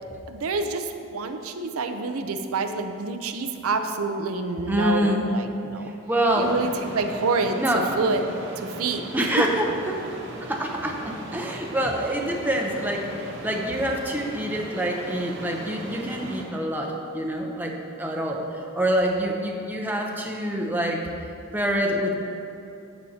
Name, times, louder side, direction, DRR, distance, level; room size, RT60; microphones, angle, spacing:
voice 1, 0.3-5.9 6.4-8.2 8.6-9.0, right 3 dB, 90° right, 6 dB, 0.6 m, -27 dB
voice 2, 4.7-5.4 5.8-6.7 7.6-8.2 9.1-10.0 10.4-22.1, equal, 10° right, 0 dB, 0.6 m, -26 dB
sound 1, 6.4-16.5, right 1 dB, 55° right, 1.1 m, -38 dB
12.5 x 7.9 x 2.8 m, 2.8 s
head